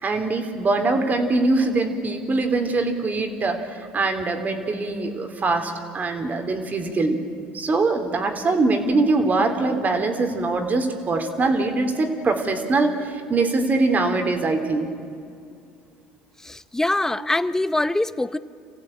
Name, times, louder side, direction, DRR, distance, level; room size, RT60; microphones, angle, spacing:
voice 1, 0.0-7.2 7.5-14.9, right 3 dB, 35° right, 6 dB, 3.2 m, -23 dB
voice 2, 16.4-18.4, left 2 dB, 10° left, 15 dB, 0.8 m, -23 dB
26.5 x 15.5 x 8.8 m, 2.4 s
hypercardioid pair, 75°, 5 cm